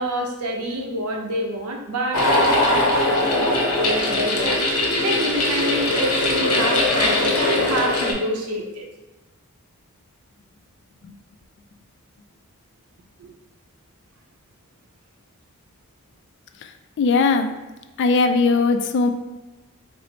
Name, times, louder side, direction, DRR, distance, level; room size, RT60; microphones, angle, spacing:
voice 1, 0.0-8.8 13.2-13.3, right 1 dB, 85° right, 2 dB, 0.7 m, -27 dB
sound 1, 2.1-8.1, left 2 dB, 85° left, 0.7 m, -20 dB
voice 2, 17.0-17.5 18.0-19.1, left 4 dB, 55° left, 7 dB, 0.3 m, -19 dB
4.4 x 2.0 x 3.9 m, 1.1 s
head